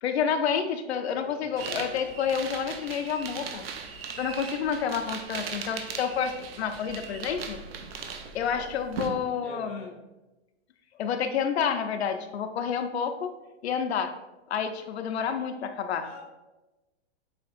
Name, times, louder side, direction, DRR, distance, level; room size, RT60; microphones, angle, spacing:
voice 1, 0.0-3.6 4.2-7.6 8.3-9.9 11.0-13.3 13.6-14.1 14.5-16.0, left 7 dB, 70° left, 7 dB, 0.6 m, -29 dB
voice 2, 1.1-1.9 9.4-10.0 16.0-16.2, left 4 dB, 5° left, -8 dB, 0.6 m, -45 dB
sound 1, 1.6-9.1, right 5 dB, 60° right, 0.7 m, -38 dB
7.7 x 2.9 x 2.4 m, 1.0 s
hypercardioid pair, 170°, 34 cm